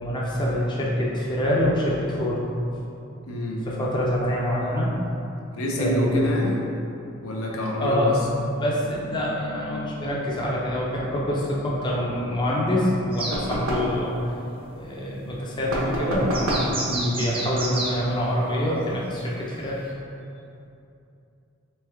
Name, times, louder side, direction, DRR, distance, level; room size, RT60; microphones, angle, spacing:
voice 1, 0.0-2.4 3.7-4.9 5.8-6.3 7.8-8.1 8.4-14.1 14.7-16.5 17.2-19.8, equal, 20° left, -5 dB, 0.5 m, -25 dB
voice 2, 3.3-3.6 5.5-6.6 7.2-8.2 16.9-17.2, left 1 dB, 85° left, -2 dB, 0.6 m, -26 dB
sound 1, 13.1-13.4 16.3-18.0 19.2-19.3 19.9-20.0, right 2 dB, 25° right, 0.6 m, -30 dB
sound 2, 13.3-14.0 15.7-16.8, right 1 dB, 85° right, 0.8 m, -26 dB
3.4 x 3.3 x 3.4 m, 2.7 s
head